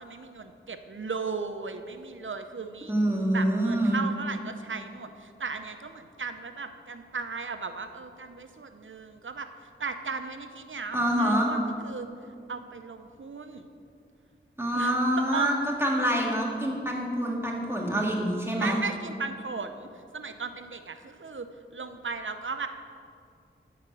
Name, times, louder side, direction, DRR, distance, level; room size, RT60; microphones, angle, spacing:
voice 1, 0.0-2.9 3.3-9.5 9.8-12.1 12.5-13.7 14.7-15.5 18.6-22.7, right 4 dB, 70° right, 8 dB, 0.7 m, -36 dB
voice 2, 2.9-4.0 10.9-11.5 14.6-18.8, right 1 dB, 10° right, -2 dB, 1.9 m, -26 dB
10.0 x 5.0 x 7.8 m, 2.4 s
wide cardioid pair, 45°, 21 cm